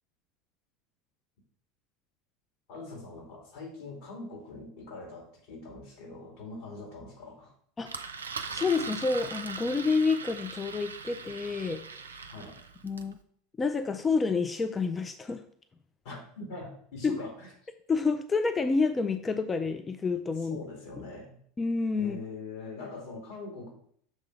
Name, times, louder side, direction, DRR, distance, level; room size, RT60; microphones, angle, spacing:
voice 1, 2.7-7.5 12.3-12.6 16.0-17.5 20.4-21.4 22.0-23.7, left 3 dB, 55° left, -1 dB, 2.7 m, -42 dB
Engine, 7.9-13.1, right 5 dB, 80° right, 0.4 m, -40 dB
voice 2, 8.5-11.8 12.8-13.2 13.6-15.4 17.0-17.2 17.9-20.6 21.6-22.2, left 4 dB, 20° left, 9 dB, 0.4 m, -28 dB
6.5 x 3.8 x 4.7 m, 0.62 s
figure-of-eight pair, 80°, 0 cm